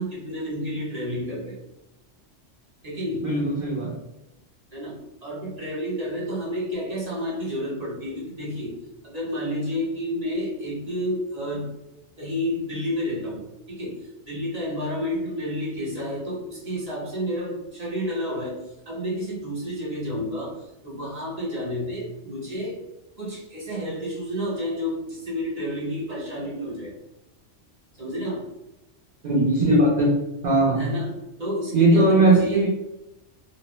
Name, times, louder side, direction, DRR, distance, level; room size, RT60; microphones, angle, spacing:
voice 1, 0.0-1.6 2.8-3.3 4.7-8.8 9.0-11.7 12.2-18.6 18.9-22.8 23.2-26.9 28.0-28.4 30.8-32.6, equal, 35° right, -5 dB, 0.9 m, -30 dB
voice 2, 3.2-4.0 29.2-30.1 30.4-30.8 31.7-32.7, right 2 dB, 50° right, -3 dB, 0.5 m, -19 dB
2.7 x 2.1 x 2.9 m, 0.93 s
omnidirectional pair, 1.3 m